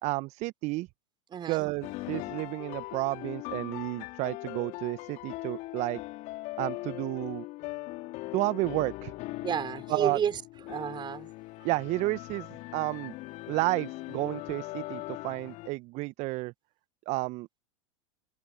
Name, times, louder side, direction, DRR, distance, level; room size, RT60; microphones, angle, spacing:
voice 1, 0.0-0.9 1.5-6.0 6.6-7.4 8.3-9.1 9.9-10.2 11.6-13.1 13.5-16.5 17.1-17.6, right 21 dB, 45° right, 1.1 m, -31 dB
voice 2, 1.3-1.7 9.4-10.4 10.7-11.3, right 8 dB, 25° right, 5.5 m, -31 dB
sound 1, 1.8-15.7, left 20 dB, 45° left, 3.2 m, -40 dB
hypercardioid pair, 90°, 17 cm